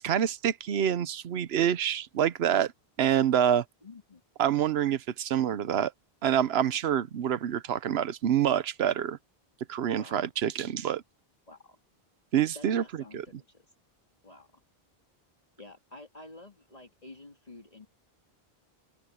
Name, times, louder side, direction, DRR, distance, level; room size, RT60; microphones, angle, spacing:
voice 1, 0.0-2.7 3.0-3.6 4.4-5.9 6.2-9.2 9.7-11.0 12.3-12.8 13.1-13.2, right 9 dB, 85° right, 1.0 m, -26 dB
voice 2, 3.8-4.2 10.0-10.3 11.5-11.8 12.5-13.6 14.2-14.5 15.6-17.9, left 2 dB, 40° left, 2.3 m, -50 dB
open air
omnidirectional pair, 1.0 m